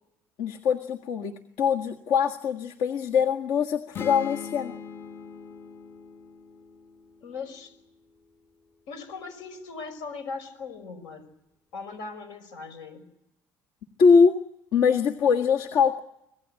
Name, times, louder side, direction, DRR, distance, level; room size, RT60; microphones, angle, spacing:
voice 1, 0.4-4.7 14.0-14.4 14.7-16.0, left 6 dB, 65° left, 3 dB, 1.7 m, -22 dB
sound 1, 3.9-7.7, left 7 dB, 35° left, 1.4 m, -40 dB
voice 2, 7.2-7.7 8.9-11.3 11.7-13.0, left 4 dB, 85° left, 10 dB, 5.7 m, -39 dB
26.0 x 17.5 x 8.8 m, 0.85 s
cardioid pair, 135°, 7 cm